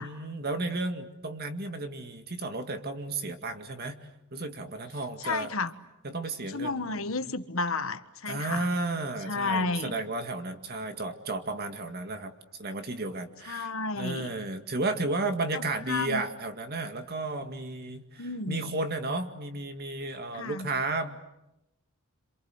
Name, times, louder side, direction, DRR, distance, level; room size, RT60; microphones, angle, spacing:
voice 1, 0.0-5.5 6.0-7.0 8.3-12.3 12.6-13.7 14.0-21.3, right 2 dB, 45° right, 7 dB, 2.1 m, -33 dB
voice 2, 5.2-5.7 6.5-8.7 9.3-10.0 13.4-14.3 15.5-16.2 18.2-18.7 20.3-20.7, left 3 dB, 65° left, 11 dB, 1.3 m, -32 dB
27.5 x 27.0 x 8.0 m, 0.92 s
head